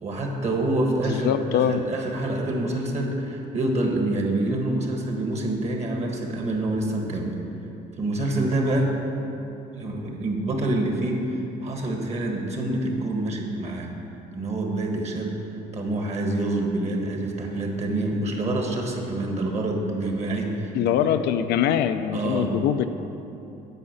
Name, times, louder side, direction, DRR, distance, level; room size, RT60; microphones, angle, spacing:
voice 1, 0.0-7.3 8.0-8.9 9.7-13.9 14.3-15.4 15.7-20.7 22.1-22.6, right 2 dB, 40° right, 1 dB, 1.6 m, -26 dB
voice 2, 1.0-1.8 20.7-22.9, left 9 dB, 75° left, 9 dB, 0.5 m, -23 dB
9.7 x 4.9 x 7.9 m, 2.9 s
cardioid pair, 110°, 17 cm